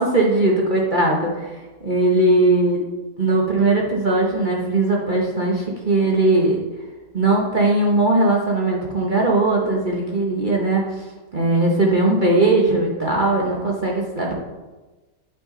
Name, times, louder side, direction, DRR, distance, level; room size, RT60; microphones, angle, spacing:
voice 1, 0.0-1.5 1.8-2.8 3.2-6.6 7.1-10.8 11.3-14.3, right 2 dB, 35° right, -2 dB, 0.9 m, -19 dB
8.5 x 6.1 x 3.8 m, 1.2 s
omnidirectional pair, 1.9 m